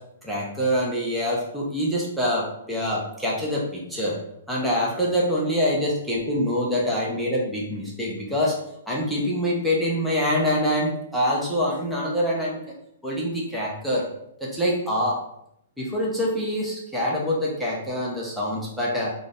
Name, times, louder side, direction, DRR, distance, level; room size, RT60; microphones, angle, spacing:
voice 1, 0.2-4.1 4.5-8.6 8.9-12.6 13.0-14.0 14.4-15.2 15.8-19.1, equal, ahead, -6 dB, 0.9 m, -25 dB
3.8 x 2.5 x 3.6 m, 0.76 s
figure-of-eight pair, 120°, 0 cm